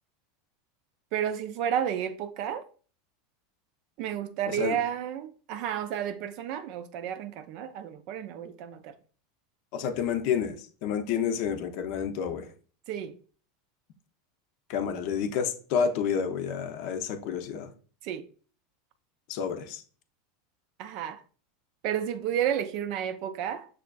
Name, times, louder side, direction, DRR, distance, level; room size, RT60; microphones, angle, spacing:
voice 1, 1.1-2.6 4.0-8.9 12.9-13.2 18.0-18.2 20.8-21.2 21.8-23.7, right 9 dB, 55° right, 0.4 m, -31 dB
voice 2, 4.5-4.8 9.7-10.6 10.8-12.5 14.7-17.7 19.3-19.8, left 7 dB, 60° left, 0.5 m, -29 dB
6.1 x 2.4 x 2.2 m
hypercardioid pair, 90°, 0 cm